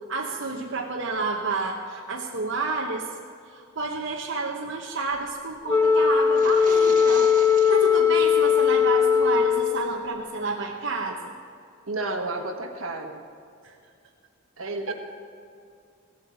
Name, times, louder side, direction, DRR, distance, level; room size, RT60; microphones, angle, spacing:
voice 1, 0.1-3.1 3.5-7.3 7.7-11.3 13.6-13.7 14.9-15.0, right 3 dB, 60° right, -1 dB, 0.9 m, -30 dB
Wind instrument woodwind instrument, 5.7-10.1, left 7 dB, 15° left, 0.5 m, -19 dB
sound 1, 6.2-8.0, right 4 dB, 40° right, 1.5 m, -39 dB
voice 2, 11.9-13.2 14.6-14.9, right 2 dB, 75° right, 4 dB, 1.5 m, -31 dB
17.0 x 8.6 x 7.0 m, 2.5 s
head